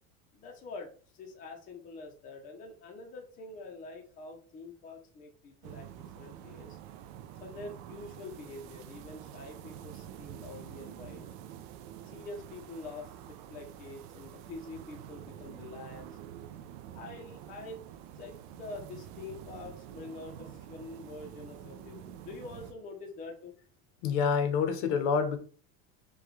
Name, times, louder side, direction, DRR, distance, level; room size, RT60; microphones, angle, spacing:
voice 1, 0.3-5.9 6.1-6.8 7.4-11.2 12.0-16.1 16.9-17.8 18.1-23.6, left 3 dB, 20° left, 0.6 m, -46 dB
sound 1, 5.6-22.7, right 10 dB, 60° right, 0.5 m, -47 dB
voice 2, 24.0-25.4, left 6 dB, 65° left, 0.8 m, -27 dB
4.9 x 2.3 x 3.0 m
cardioid pair, 165°, 38 cm